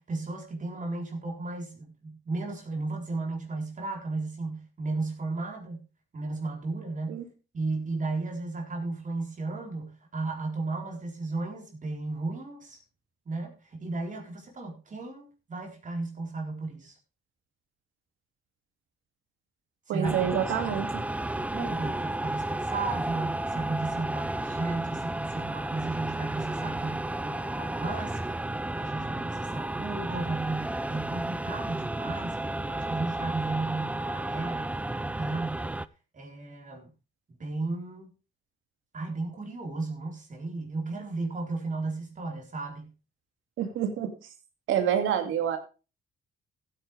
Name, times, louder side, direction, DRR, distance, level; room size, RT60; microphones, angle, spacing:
voice 1, 0.0-5.8 6.1-7.2 7.5-12.8 13.3-17.0 19.9-20.3 21.2-28.4 28.8-35.7 36.1-36.9 37.4-38.1 38.9-42.9, right 3 dB, 40° right, 1 dB, 4.2 m, -34 dB
voice 2, 19.9-21.0 43.6-44.1 44.7-45.6, right 9 dB, 90° right, 7 dB, 2.4 m, -27 dB
sound 1, 20.0-35.9, right 1 dB, 5° right, 0.5 m, -33 dB
15.5 x 9.1 x 3.4 m, 0.32 s
cardioid pair, 90°, 20 cm